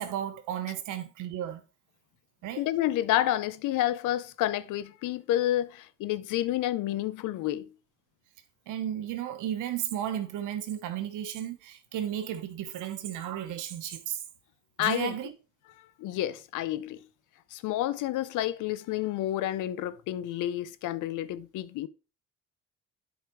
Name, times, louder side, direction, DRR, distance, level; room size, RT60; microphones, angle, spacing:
voice 1, 0.0-1.6 2.4-2.6 8.7-14.2 14.8-15.3, right 10 dB, 90° right, 1.1 m, -34 dB
voice 2, 2.6-7.7 14.8-15.1 15.8-17.0 17.5-21.9, left 13 dB, 90° left, 0.6 m, -29 dB
8.0 x 5.0 x 4.7 m
cardioid pair, 90°, 30 cm